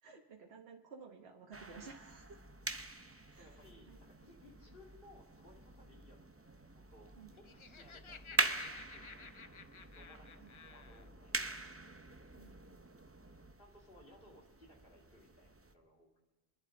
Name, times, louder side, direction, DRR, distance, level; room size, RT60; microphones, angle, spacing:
voice 1, 0.0-2.4 3.1-4.0 7.2-7.4 10.4-10.5 12.4-12.9, right 5 dB, 75° right, 1 dB, 1.4 m, -55 dB
sound 1, 1.5-15.7, right 2 dB, 15° right, 0.5 m, -43 dB
voice 2, 3.4-11.9 13.6-16.3, left 1 dB, 60° left, -1 dB, 2.6 m, -62 dB
Laughter, 7.2-11.1, left 5 dB, 40° left, 0.4 m, -53 dB
26.5 x 11.0 x 3.8 m, 1.3 s
omnidirectional pair, 1.1 m